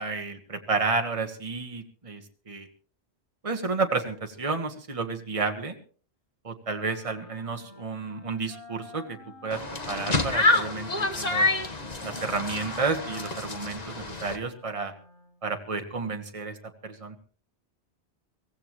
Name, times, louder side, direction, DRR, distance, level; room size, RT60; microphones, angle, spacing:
voice 1, 0.0-2.7 3.4-5.7 6.4-9.6 9.9-11.5 12.0-14.9 15.4-16.6 16.8-17.1, right 4 dB, 30° right, 4 dB, 1.5 m, -31 dB
Wind instrument woodwind instrument, 6.8-15.4, left 3 dB, 85° left, 3.2 m, -49 dB
sound 1, 9.5-14.4, left 2 dB, 40° left, 1.5 m, -28 dB
23.5 x 16.5 x 3.1 m, 0.41 s
omnidirectional pair, 1.1 m